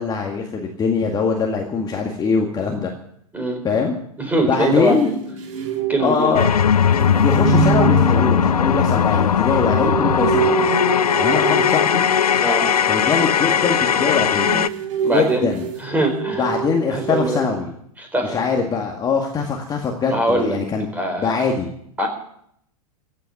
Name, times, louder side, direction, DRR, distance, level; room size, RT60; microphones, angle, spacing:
voice 1, 0.0-2.9 3.6-3.9 4.4-5.1 6.0-6.6 7.2-10.7 11.2-12.1 12.9-14.6 15.1-15.7 16.4-17.7 18.2-20.9 21.2-21.7, left 5 dB, 20° left, 1 dB, 2.0 m, -22 dB
voice 2, 4.2-5.1 5.9-6.4 12.4-12.7 15.0-15.5 15.8-16.5 16.9-17.5 18.0-18.4 20.1-20.6 20.9-21.4 22.0-22.1, right 1 dB, 10° right, 4 dB, 4.4 m, -22 dB
sound 1, 4.8-12.1 14.0-17.3, right 7 dB, 55° right, 2.6 m, -26 dB
sound 2, 6.3-14.7, left 8 dB, 80° left, 0.6 m, -18 dB
15.5 x 8.5 x 9.5 m, 0.69 s
figure-of-eight pair, 100°, 19 cm